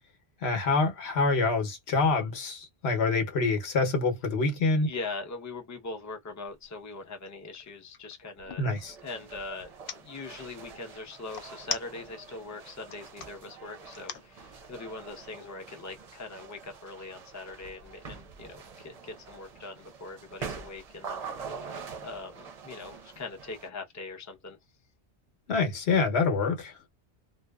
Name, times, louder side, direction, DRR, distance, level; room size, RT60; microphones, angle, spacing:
voice 1, 0.4-4.9 8.6-8.9 25.5-26.7, left 3 dB, 90° left, 1.1 m, -26 dB
voice 2, 4.8-8.7 9.0-21.3 22.0-24.6, left 3 dB, 20° left, 0.6 m, -41 dB
sound 1, 6.5-6.7 7.1-8.7 9.6-10.0 11.3-12.3 12.8-13.3 13.9-14.3, left 8 dB, 65° left, 0.7 m, -38 dB
sound 2, 8.8-23.7, right 5 dB, 45° right, 0.6 m, -45 dB
2.7 x 2.2 x 2.2 m
omnidirectional pair, 1.1 m